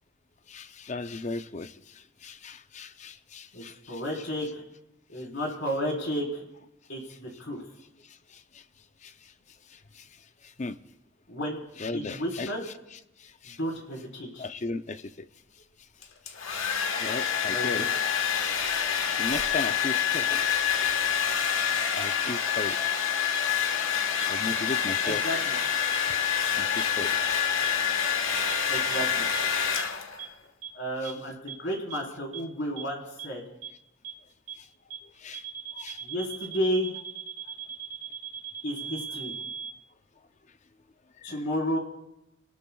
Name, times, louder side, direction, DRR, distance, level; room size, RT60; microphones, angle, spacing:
voice 1, 0.5-1.7 2.2-4.0 8.5-8.6 9.0-9.1 10.0-10.1 10.6-10.8 11.8-12.7 13.2-13.6 14.4-15.3 16.7-18.0 19.2-20.4 21.9-25.3 26.6-27.3 28.5-28.7 31.0-31.1 35.2-35.4 35.7-36.0, left 3 dB, 35° left, 0.5 m, -37 dB
voice 2, 3.5-4.6 5.1-6.4 6.9-7.0 7.4-7.6 11.3-11.6 11.9-12.6 13.6-14.4 17.5-17.9 25.0-25.6 28.7-29.3 30.7-33.4 36.0-37.0 38.6-39.3 41.2-41.8, equal, 60° left, 4.1 m, -32 dB
Domestic sounds home sounds, 16.0-30.3, left 8 dB, 75° left, 1.3 m, -27 dB
sound 1, 23.3-23.4 24.2-24.3 25.0-25.1 25.9-26.0 26.8-26.9 27.6-27.7 28.5-28.6 28.9-29.0 29.3-29.4 29.8-29.9 30.2-30.3 30.6-30.7 31.0-31.1 31.5-31.6 31.9-32.0 32.3-32.4 32.8-32.9 33.2-33.3 33.6-33.7 34.0-34.1 34.5-34.6 34.9-35.0 35.3-39.7, right 9 dB, 75° right, 2.3 m, -38 dB
30.0 x 19.5 x 2.3 m
head